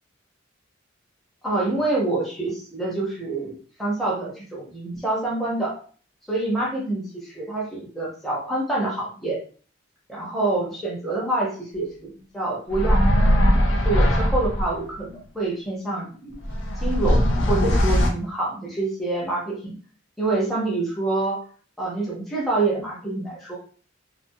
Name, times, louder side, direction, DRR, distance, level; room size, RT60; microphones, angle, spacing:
voice 1, 1.4-5.7 6.3-9.4 10.1-13.3 13.7-16.4 16.8-19.8 20.2-21.4 21.8-23.6, right 2 dB, ahead, -6 dB, 0.6 m, -27 dB
sound 1, 12.7-14.8 16.3-18.1, equal, 70° left, 0.6 m, -20 dB
2.4 x 2.2 x 2.6 m, 0.42 s
head